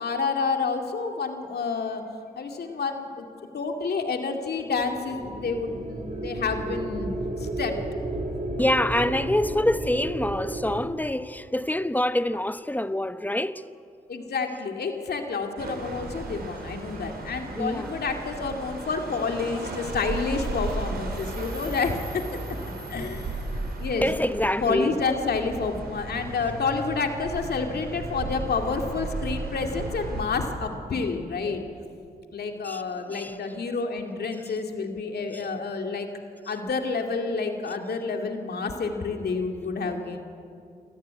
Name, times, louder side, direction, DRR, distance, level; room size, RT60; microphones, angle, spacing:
voice 1, 0.0-2.0 2.4-3.3 3.5-7.8 8.9-9.1 14.1-22.4 22.9-24.1 24.6-31.6 32.3-36.1 36.5-40.2, left 4 dB, 70° left, 2.4 m, -29 dB
sound 1, 4.7-10.8, right 1 dB, 45° right, 3.9 m, -33 dB
voice 2, 8.6-13.6 17.6-17.9 24.0-25.0 32.6-32.8 33.1-33.3 35.3-35.4, left 1 dB, 10° left, 1.0 m, -26 dB
sound 2, 15.6-30.2, right 2 dB, 65° right, 4.7 m, -35 dB
26.0 x 14.5 x 9.6 m
supercardioid pair, 50°, 17 cm